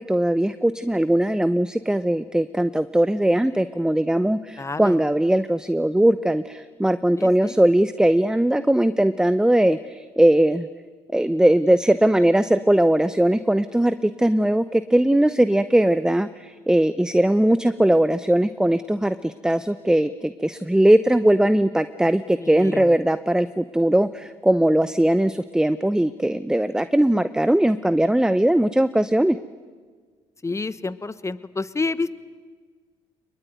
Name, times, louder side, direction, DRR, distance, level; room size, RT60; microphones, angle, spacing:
voice 1, 0.0-10.7 11.1-29.4, right 1 dB, 5° right, 13 dB, 0.8 m, -20 dB
voice 2, 4.6-5.0 7.2-7.6 22.4-22.9 30.4-32.1, left 3 dB, 20° left, 15 dB, 1.2 m, -29 dB
23.0 x 21.5 x 9.4 m, 1.6 s
hypercardioid pair, 60°, 14 cm